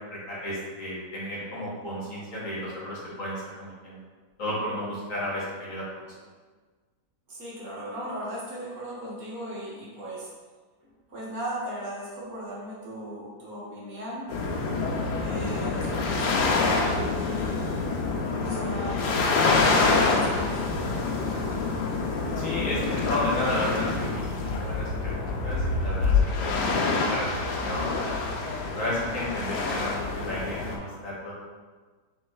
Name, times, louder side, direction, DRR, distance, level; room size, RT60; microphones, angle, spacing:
voice 1, 0.1-4.0 4.4-5.8 22.4-28.4 28.6-31.3, left 1 dB, 55° left, -5 dB, 1.4 m, -33 dB
voice 2, 7.3-10.3 10.8-14.3 15.2-17.9 18.4-21.3, right 1 dB, 60° right, -7 dB, 1.6 m, -38 dB
sound 1, 14.3-30.8, left 3 dB, 80° left, 1.2 m, -26 dB
6.1 x 3.4 x 2.3 m, 1.4 s
omnidirectional pair, 1.8 m